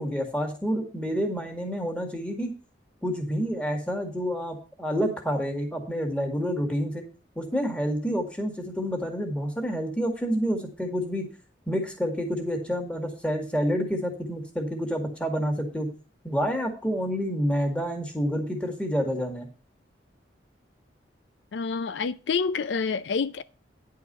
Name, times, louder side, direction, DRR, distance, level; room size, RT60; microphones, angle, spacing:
voice 1, 0.0-2.5 3.0-7.1 7.4-11.3 11.7-15.9 16.2-19.5, equal, 5° left, 1.9 m, -28 dB
voice 2, 21.5-23.4, left 5 dB, 75° left, 0.4 m, -28 dB
10.5 x 4.7 x 6.7 m
head